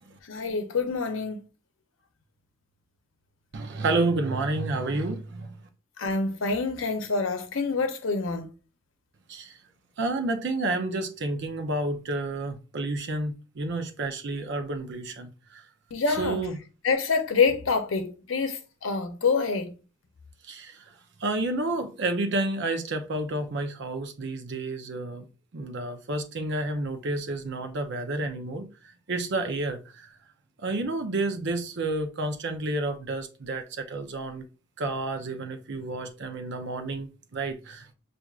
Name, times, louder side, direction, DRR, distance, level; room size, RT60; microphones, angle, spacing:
voice 1, 0.3-1.4 6.0-8.4 15.9-16.4 16.8-19.7, left 4 dB, 80° left, 0.7 m, -26 dB
voice 2, 3.5-5.6 9.3-9.6 10.0-15.6 16.1-16.6 20.4-20.8 21.2-25.3 25.5-28.7 29.1-30.1 30.6-34.5 34.8-37.9, right 2 dB, 60° right, 0.6 m, -30 dB
5.9 x 2.5 x 2.4 m
head